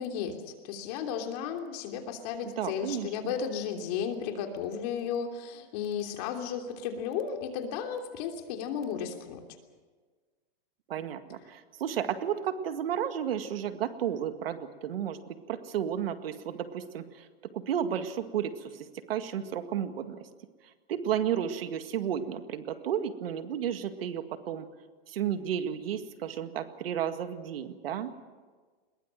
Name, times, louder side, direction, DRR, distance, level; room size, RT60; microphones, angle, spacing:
voice 1, 0.0-9.4, left 7 dB, 40° left, 4 dB, 3.2 m, -34 dB
voice 2, 2.6-3.3 10.9-17.3 17.5-20.3 20.9-24.7 25.1-28.1, right 9 dB, 70° right, 8 dB, 2.0 m, -33 dB
21.5 x 21.5 x 7.6 m, 1.4 s
hypercardioid pair, 155°, 30 cm